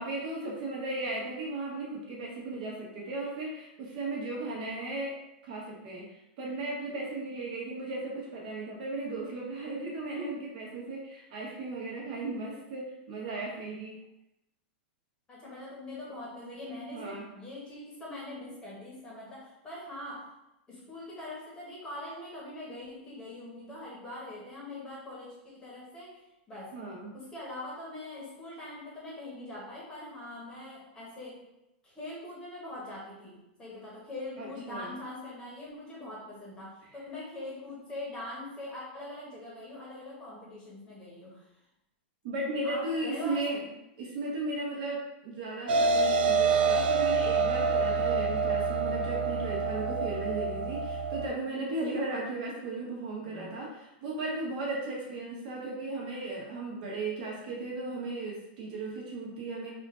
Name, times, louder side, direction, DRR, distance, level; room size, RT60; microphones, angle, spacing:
voice 1, 0.0-5.2 5.4-6.1 6.4-14.0 16.9-17.3 26.7-27.1 34.4-34.9 42.2-43.6 44.0-59.7, right 2 dB, 50° right, -3 dB, 1.1 m, -36 dB
voice 2, 15.3-20.4 20.7-26.8 27.1-31.5 31.8-41.5 42.6-43.7, left 1 dB, 15° left, -5 dB, 1.0 m, -43 dB
sound 1, 45.7-51.3, right 4 dB, 75° right, 0.4 m, -27 dB
3.6 x 2.5 x 3.6 m, 0.89 s
supercardioid pair, 160°, 6 cm